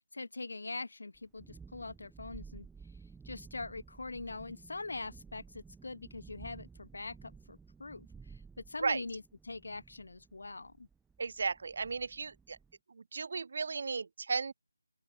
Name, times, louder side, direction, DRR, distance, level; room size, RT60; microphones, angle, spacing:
voice 1, 0.1-2.7 3.2-8.1 8.7-10.9, left 3 dB, 55° left, 1.0 m, -43 dB
Thunderstorm, 1.1-12.7, right 5 dB, 5° right, 0.6 m, -54 dB
voice 2, 11.2-12.6 12.9-14.5, right 4 dB, 40° right, 0.7 m, -35 dB
open air
figure-of-eight pair, 155°, 0 cm